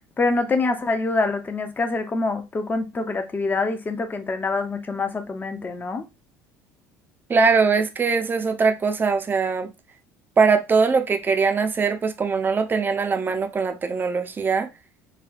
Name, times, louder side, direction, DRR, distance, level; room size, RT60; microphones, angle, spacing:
voice 1, 0.2-6.0, left 3 dB, 25° left, 0.6 m, -25 dB
voice 2, 7.3-9.7 10.4-14.7, right 5 dB, 25° right, 0.5 m, -21 dB
3.3 x 2.2 x 2.3 m
hypercardioid pair, 65°, 8 cm